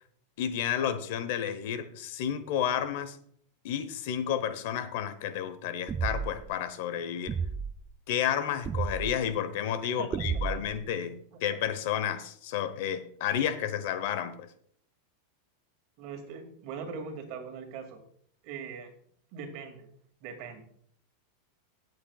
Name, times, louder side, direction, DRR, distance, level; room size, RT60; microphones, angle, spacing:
voice 1, 0.4-3.2 3.6-7.4 8.1-14.5, left 9 dB, 60° left, 1.0 m, -31 dB
sound 1, 5.9-6.5 7.3-7.7 8.6-9.2 10.1-10.8, right 6 dB, 20° right, 0.4 m, -31 dB
voice 2, 16.0-18.0 18.4-18.9 19.3-19.9 20.2-20.6, right 6 dB, 50° right, 2.3 m, -41 dB
17.5 x 8.0 x 2.4 m
supercardioid pair, 155°, 0 cm